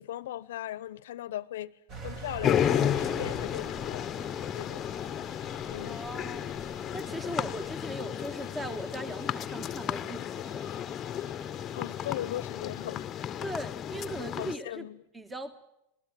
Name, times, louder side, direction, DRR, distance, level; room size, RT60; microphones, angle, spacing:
voice 1, 0.0-1.7 2.0-4.1 4.5-4.8 5.7-6.0 7.3-7.4 11.7-13.3 14.4-15.0, left 13 dB, 75° left, 0.8 m, -38 dB
Engine, 1.9-7.7, right 4 dB, 45° right, 4.8 m, -45 dB
sound 1, 2.2-12.3, right 2 dB, 75° right, 4.7 m, -58 dB
sound 2, 2.4-14.5, left 10 dB, 30° left, 0.9 m, -33 dB
voice 2, 5.8-6.5 6.9-10.8 13.4-14.9 15.1-15.6, right 1 dB, 10° right, 1.4 m, -39 dB
26.5 x 19.5 x 7.6 m
hypercardioid pair, 110°, 0 cm